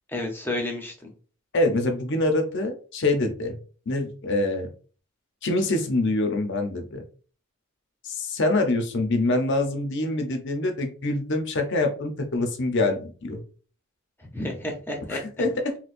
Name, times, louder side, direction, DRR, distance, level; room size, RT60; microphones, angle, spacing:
voice 1, 0.1-1.1 14.2-15.5, left 1 dB, 10° left, 1 dB, 0.7 m, -31 dB
voice 2, 1.5-3.6 3.9-4.7 5.4-7.0 8.0-13.4 15.1-15.8, left 2 dB, 55° left, 5 dB, 0.6 m, -25 dB
4.2 x 2.3 x 2.5 m, 0.39 s
head